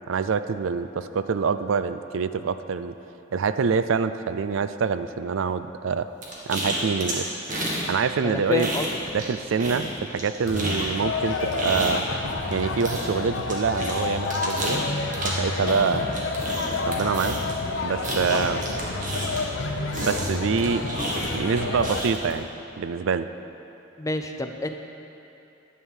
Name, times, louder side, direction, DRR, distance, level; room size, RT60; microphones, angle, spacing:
voice 1, 0.1-2.9 3.3-6.1 6.5-7.4 7.9-8.7 9.1-12.0 12.5-14.8 15.2-16.1 16.9-17.4 17.8-18.6 20.0-20.8 21.3-22.5 22.8-23.3, right 5 dB, 75° right, 12 dB, 0.4 m, -25 dB
sound 1, 6.2-7.9 8.1-9.3 9.6-19.6 19.9-22.3, right 1 dB, 40° right, 1.7 m, -31 dB
voice 2, 8.2-8.9 18.3-18.5 24.0-24.8, left 2 dB, 15° left, 6 dB, 0.5 m, -28 dB
sound 2, 10.4-22.0, left 3 dB, 70° left, 0.9 m, -29 dB
11.0 x 6.5 x 7.3 m, 2.8 s
head